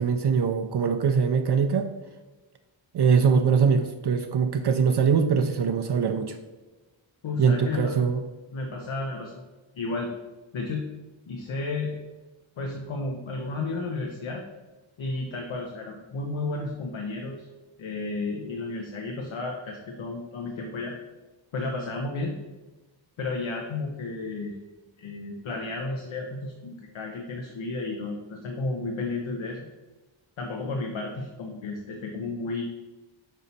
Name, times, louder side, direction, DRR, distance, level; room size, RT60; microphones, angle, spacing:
voice 1, 0.0-1.9 2.9-6.4 7.4-8.2, right 6 dB, 60° right, 5 dB, 0.5 m, -22 dB
voice 2, 7.2-8.0 8.5-9.4 9.7-10.1 10.5-10.9 11.3-11.9 12.6-14.4 15.0-17.5 17.8-21.0 21.5-22.3 23.2-24.5 25.0-29.7 30.4-32.7, left 3 dB, 80° left, 1 dB, 0.8 m, -32 dB
6.2 x 4.1 x 4.0 m, 1.2 s
wide cardioid pair, 120°, 47 cm